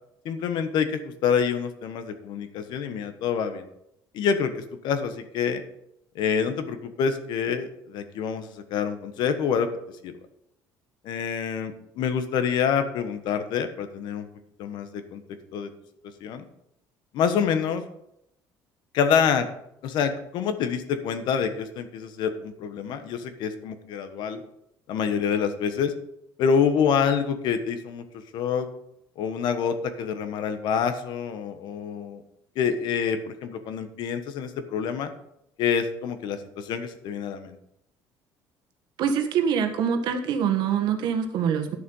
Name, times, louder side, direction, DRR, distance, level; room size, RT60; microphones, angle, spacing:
voice 1, 0.2-3.7 4.1-5.6 6.1-9.7 10.0-10.1 11.0-14.3 14.6-15.2 15.5-15.7 16.2-16.4 17.1-17.8 18.9-19.5 19.8-24.4 24.9-25.9 26.4-28.0 28.3-28.7 29.2-32.2 32.5-35.1 35.6-37.6, left 7 dB, 60° left, 9 dB, 1.3 m, -27 dB
voice 2, 39.0-41.8, right 7 dB, 60° right, 6 dB, 1.4 m, -24 dB
11.0 x 6.8 x 5.6 m, 0.78 s
cardioid pair, 150°, 8 cm